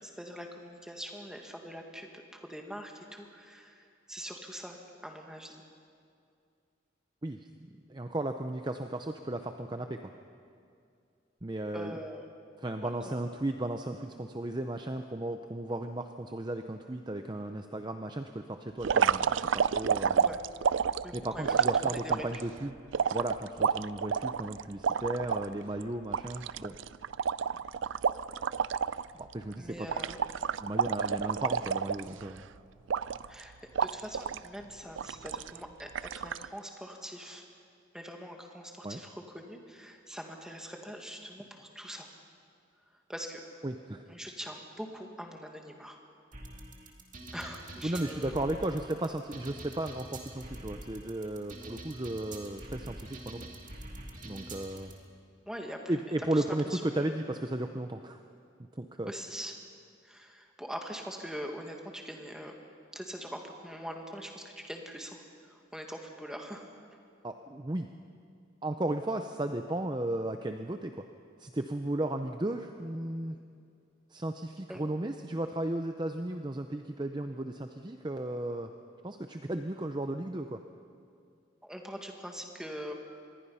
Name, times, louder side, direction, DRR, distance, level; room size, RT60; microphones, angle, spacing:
voice 1, 0.0-4.8 5.0-5.6 11.7-12.3 12.8-13.1 20.1-20.4 21.0-22.3 29.6-30.2 33.3-33.5 33.8-37.5 37.9-42.1 43.1-43.4 44.1-46.0 47.3-48.4 55.5-57.0 59.1-59.5 60.0-62.5 62.9-66.7 74.7-74.8 81.6-82.9, equal, 5° right, 2 dB, 1.9 m, -43 dB
voice 2, 7.9-10.1 11.4-12.0 12.6-20.3 21.1-22.8 23.1-26.7 29.1-29.9 30.6-32.4 38.8-39.0 43.6-44.0 47.8-53.5 54.2-54.9 55.9-58.2 58.7-59.1 67.2-67.9 68.6-71.0 71.4-73.4 74.1-78.7 79.0-80.6, right 1 dB, 20° right, 6 dB, 0.6 m, -35 dB
sound 1, 18.8-22.4 22.9-25.5 25.8-25.9 26.1-29.1 29.3-29.5 29.9-32.4 32.9-33.4 33.8-34.5 35.0-35.6 36.0-36.5, right 7 dB, 75° right, 0.4 m, -29 dB
sound 2, 46.3-54.9, right 1 dB, 40° right, 2.4 m, -45 dB
26.0 x 21.0 x 5.7 m, 2.4 s
head